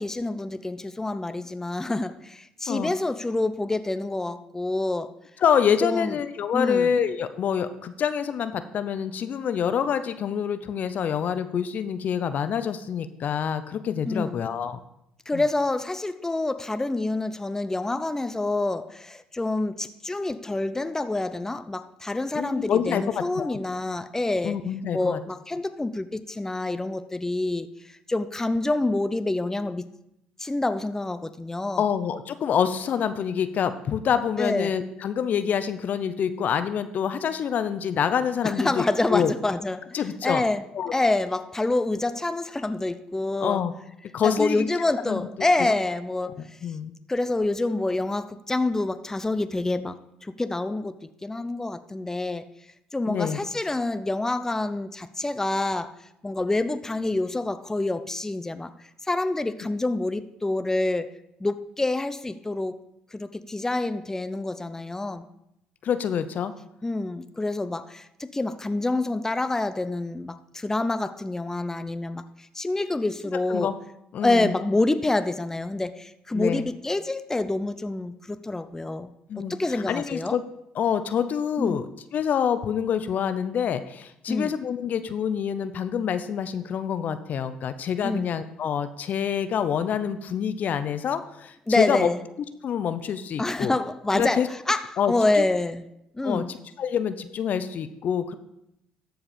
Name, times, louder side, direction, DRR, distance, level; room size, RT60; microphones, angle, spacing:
voice 1, 0.0-5.2 5.8-6.2 6.5-6.9 14.1-14.4 15.3-24.6 24.9-27.7 28.1-29.8 30.4-31.9 34.4-34.8 38.4-40.7 40.9-43.6 44.2-46.4 47.1-50.0 50.2-52.4 52.9-56.0 56.2-58.7 59.0-61.1 61.4-62.8 63.1-65.3 66.8-72.2 72.5-73.7 74.2-79.1 79.5-80.4 81.6-81.8 84.3-84.5 88.0-88.3 91.7-92.2 93.4-95.8 96.1-96.5, left 2 dB, 15° left, 12 dB, 0.6 m, -27 dB
voice 2, 5.4-14.8 15.3-15.4 22.3-23.6 24.4-25.2 31.8-38.8 39.1-39.3 39.9-40.4 40.7-40.9 43.4-43.7 44.1-44.7 45.1-45.2 46.4-46.9 53.1-53.4 65.8-66.5 73.5-73.7 74.1-74.5 76.3-76.7 79.3-79.5 79.9-80.4 80.7-81.9 82.1-92.1 92.6-93.7 94.1-94.5 95.0-95.4 96.2-98.3, left 8 dB, 55° left, 11 dB, 0.6 m, -26 dB
13.5 x 4.8 x 5.1 m, 0.81 s
hypercardioid pair, 65°, 3 cm